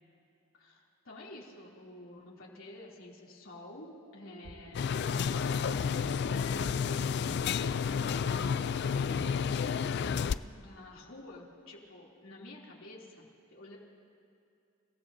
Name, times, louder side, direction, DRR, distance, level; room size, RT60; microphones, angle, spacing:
voice 1, 0.5-5.9 6.2-13.8, left 1 dB, 90° left, -3 dB, 2.9 m, -49 dB
sound 1, 4.2-10.4, right 2 dB, 85° right, 1.1 m, -50 dB
sound 2, 4.7-10.3, left 6 dB, 55° left, 0.3 m, -31 dB
29.0 x 16.5 x 2.7 m, 2.5 s
head